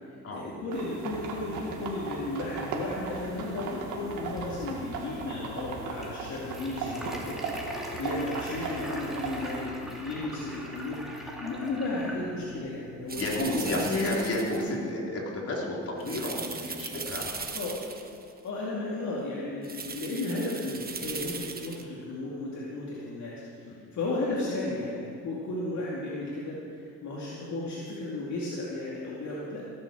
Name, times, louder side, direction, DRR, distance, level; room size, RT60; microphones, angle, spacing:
voice 1, 0.3-13.2 13.5-13.8 17.5-17.7 18.4-29.6, left 2 dB, 70° left, -5 dB, 2.6 m, -34 dB
sound 1, 0.7-9.6, right 4 dB, 85° right, 2.0 m, -37 dB
sound 2, 4.0-13.5, equal, ahead, 2.8 m, -42 dB
voice 2, 13.1-17.5 23.7-23.8, left 1 dB, 50° left, -3 dB, 3.9 m, -31 dB
sound 3, 13.1-14.7 16.0-18.3 19.6-21.8, right 5 dB, 30° right, 1.3 m, -38 dB
17.0 x 7.8 x 7.5 m, 2.6 s
cardioid pair, 90°, 30 cm